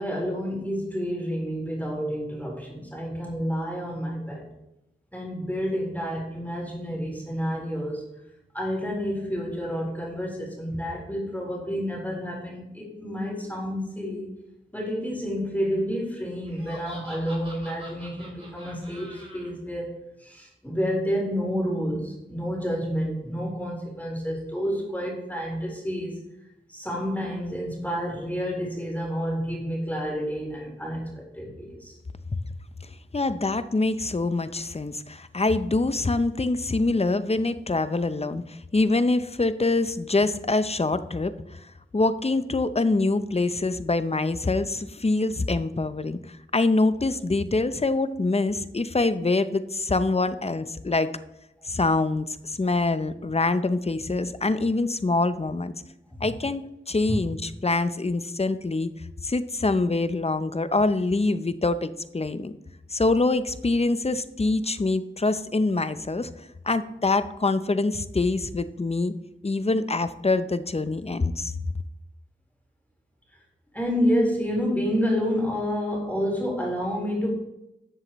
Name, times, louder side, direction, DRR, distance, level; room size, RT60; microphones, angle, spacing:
voice 1, 0.0-4.5 5.1-8.0 8.5-14.3 14.7-19.9 20.2-26.2 26.7-31.9 57.1-57.2 73.7-77.3, equal, 10° left, -3 dB, 4.1 m, -29 dB
Laughter, 16.5-19.5, right 1 dB, 30° right, 3.6 m, -45 dB
voice 2, 33.1-51.1 51.7-55.7 56.2-58.9 59.2-62.6 62.9-66.3 66.6-69.1 69.4-71.5, left 3 dB, 30° left, 12 dB, 0.6 m, -25 dB
13.5 x 7.5 x 3.1 m, 0.87 s
wide cardioid pair, 45°, 21 cm